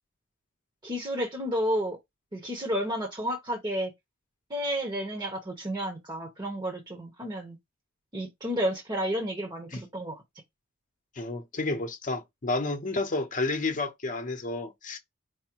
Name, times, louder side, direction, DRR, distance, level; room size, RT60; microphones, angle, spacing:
voice 1, 0.8-2.0 2.3-3.9 4.5-7.6 8.1-10.2, equal, 20° right, 0.9 m, -31 dB
voice 2, 11.2-15.0, left 3 dB, 40° left, 0.8 m, -31 dB
4.8 x 2.2 x 4.5 m
head